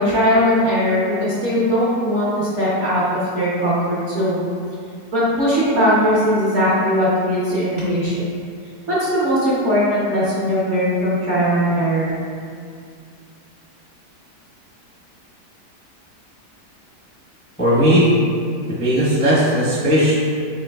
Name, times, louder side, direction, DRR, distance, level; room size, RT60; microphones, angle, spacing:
voice 1, 0.0-3.0 3.3-4.4 5.1-8.4 8.9-12.1, equal, 55° right, -8 dB, 0.9 m, -19 dB
voice 2, 17.6-18.1 18.7-20.1, equal, 10° left, -10 dB, 0.5 m, -16 dB
4.7 x 2.9 x 2.2 m, 2.2 s
omnidirectional pair, 1.8 m